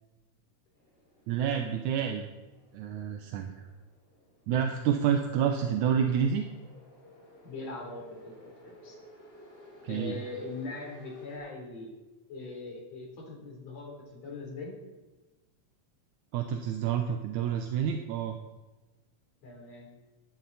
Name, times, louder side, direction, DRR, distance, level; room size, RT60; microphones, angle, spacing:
sound 1, 0.7-11.4, left 1 dB, 25° left, 5.0 m, -55 dB
voice 1, 1.3-2.3 2.7-3.5 4.5-6.4 9.8-10.2 16.3-18.4, right 8 dB, 80° right, 5 dB, 2.2 m, -28 dB
voice 2, 7.4-9.0 9.9-11.9 12.3-14.8 19.4-19.9, left 3 dB, 60° left, -1 dB, 4.6 m, -41 dB
14.5 x 11.0 x 4.1 m, 1.1 s
omnidirectional pair, 3.4 m